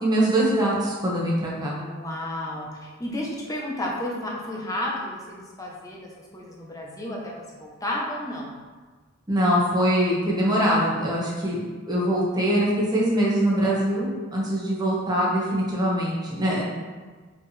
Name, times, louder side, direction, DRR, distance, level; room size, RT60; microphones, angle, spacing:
voice 1, 0.0-1.7 9.3-11.6 11.9-16.6, equal, 20° right, -6 dB, 1.5 m, -23 dB
voice 2, 1.8-8.6, left 1 dB, 15° left, -3 dB, 1.1 m, -32 dB
5.9 x 5.0 x 3.4 m, 1.4 s
head